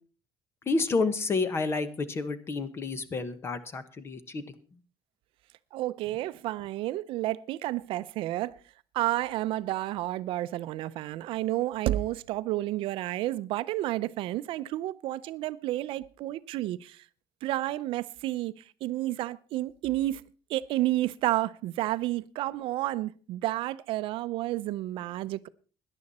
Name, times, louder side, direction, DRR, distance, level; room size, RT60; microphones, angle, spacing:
voice 1, 0.7-4.4, left 3 dB, 25° left, 1.1 m, -30 dB
voice 2, 5.7-8.6 8.9-17.0 17.4-20.2 20.5-25.5, right 15 dB, 70° right, 0.6 m, -31 dB
17.5 x 11.0 x 4.2 m
cardioid pair, 165°, 9 cm